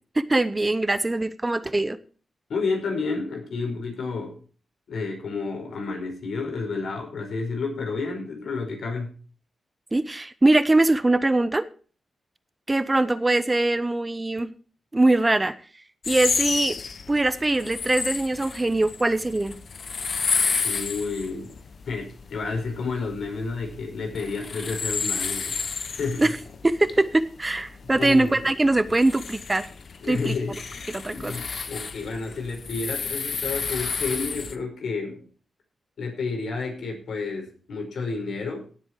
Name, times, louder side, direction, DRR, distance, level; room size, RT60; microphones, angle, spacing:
voice 1, 0.2-2.0 9.9-11.6 12.7-14.5 14.9-15.5 16.1-16.8 17.1-19.6 26.2-26.3 26.6-29.6 30.1-30.3 30.9-31.3, right 2 dB, 20° right, 14 dB, 0.8 m, -22 dB
voice 2, 2.5-4.4 4.9-9.1 20.6-21.5 21.9-26.3 27.8-28.5 30.0-30.8 31.1-35.3 36.0-38.7, left 4 dB, 75° left, 2 dB, 5.3 m, -31 dB
sound 1, 16.0-34.5, left 5 dB, 55° left, 1.2 m, -31 dB
17.5 x 7.9 x 4.7 m, 0.38 s
cardioid pair, 85°, 0 cm